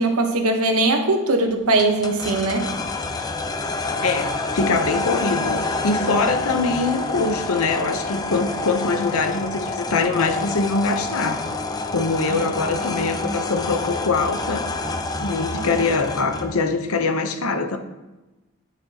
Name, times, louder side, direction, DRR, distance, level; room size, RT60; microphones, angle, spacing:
voice 1, 0.0-2.7 12.3-12.4 12.8-13.4 15.5-15.6, right 2 dB, 80° right, 4 dB, 1.0 m, -21 dB
sound 1, 1.8-16.6, left 3 dB, 15° left, 0.4 m, -28 dB
voice 2, 3.8-11.4 11.9-14.7 15.2-17.8, left 3 dB, 75° left, 8 dB, 0.8 m, -23 dB
10.5 x 5.8 x 2.9 m, 1.1 s
head